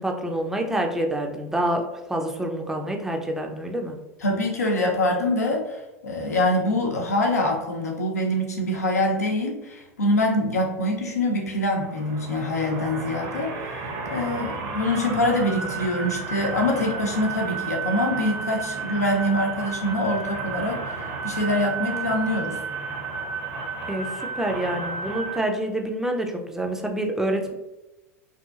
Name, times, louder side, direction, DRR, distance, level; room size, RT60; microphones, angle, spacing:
voice 1, 0.0-4.0 23.9-27.5, right 1 dB, 5° right, 2 dB, 0.4 m, -27 dB
voice 2, 4.2-22.6, left 1 dB, 85° left, 0 dB, 0.6 m, -25 dB
sound 1, 11.7-25.4, right 5 dB, 60° right, 0.7 m, -32 dB
2.7 x 2.5 x 2.4 m, 1.0 s
hypercardioid pair, 85°, 8 cm